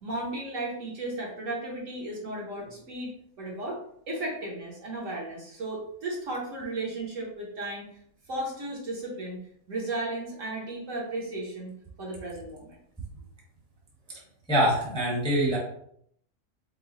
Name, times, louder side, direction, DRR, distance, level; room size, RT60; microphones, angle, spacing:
voice 1, 0.0-3.1 3.4-3.8 4.1-7.8 8.3-9.4 9.7-11.7 12.0-12.8, right 2 dB, 55° right, -3 dB, 1.3 m, -34 dB
voice 2, 14.5-15.6, right 1 dB, 5° left, -4 dB, 0.9 m, -24 dB
4.8 x 2.3 x 3.9 m, 0.69 s
omnidirectional pair, 1.7 m